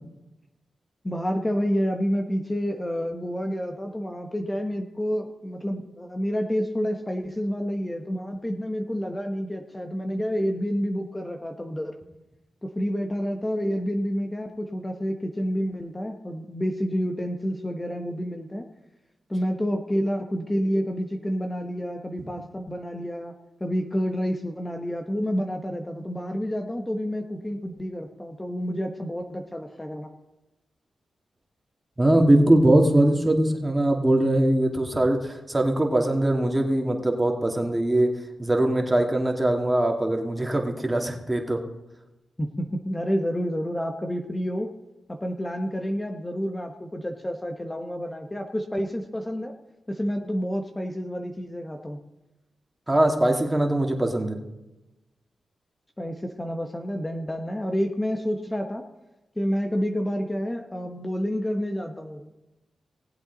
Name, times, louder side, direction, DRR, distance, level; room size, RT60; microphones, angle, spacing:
voice 1, 1.0-12.0 12.6-18.6 19.3-23.3 23.6-30.1 42.4-44.7 45.1-49.5 49.9-52.0 56.0-58.8 59.4-62.3, equal, 20° left, 4 dB, 1.2 m, -29 dB
voice 2, 32.0-38.1 38.4-41.6 52.9-54.4, right 1 dB, 20° right, 2 dB, 2.4 m, -21 dB
18.5 x 7.9 x 4.1 m, 0.98 s
supercardioid pair, 45°, 0 cm